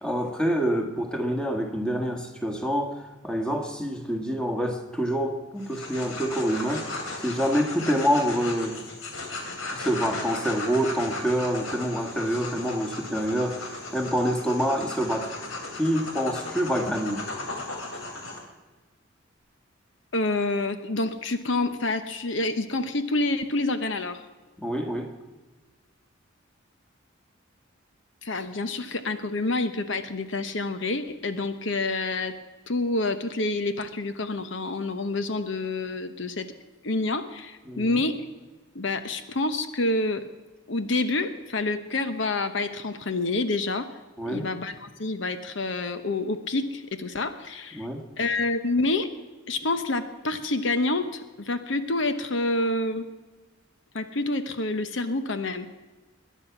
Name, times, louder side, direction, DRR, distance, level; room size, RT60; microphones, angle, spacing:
voice 1, 0.0-8.8 9.7-15.3 15.7-17.3 24.6-25.1 37.7-37.9 44.2-44.5 47.7-48.0, equal, 5° left, 3 dB, 1.7 m, -27 dB
sound 1, 5.6-18.4, left 2 dB, 80° left, 2.9 m, -36 dB
voice 2, 20.1-24.2 28.2-32.4 32.7-36.5 36.8-38.2 38.7-40.2 40.7-43.9 44.3-47.9 48.2-49.1 49.5-53.1 53.9-55.7, left 2 dB, 65° left, 9 dB, 0.9 m, -28 dB
21.5 x 10.0 x 5.9 m, 1.3 s
head